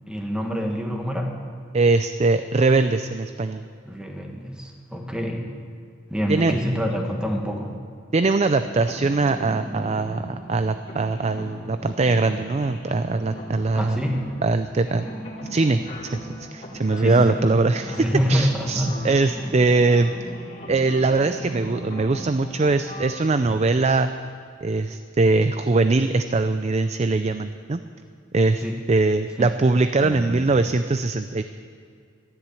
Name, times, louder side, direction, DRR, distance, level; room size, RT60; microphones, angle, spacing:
voice 1, 0.1-1.4 3.8-5.5 6.1-7.8 13.8-14.2 17.0-17.4 17.9-19.0 28.6-28.8 29.4-29.5 30.0-30.7, equal, 5° right, 2 dB, 1.5 m, -26 dB
voice 2, 1.7-3.6 6.3-6.5 8.1-14.0 14.4-15.1 15.5-16.2 16.5-18.0 18.3-20.1 20.7-24.1 24.6-27.8 28.3-31.4, right 3 dB, 35° right, 10 dB, 0.4 m, -21 dB
sound 1, 8.3-23.7, equal, 35° left, 2.5 m, -38 dB
13.5 x 11.5 x 8.5 m, 2.2 s
head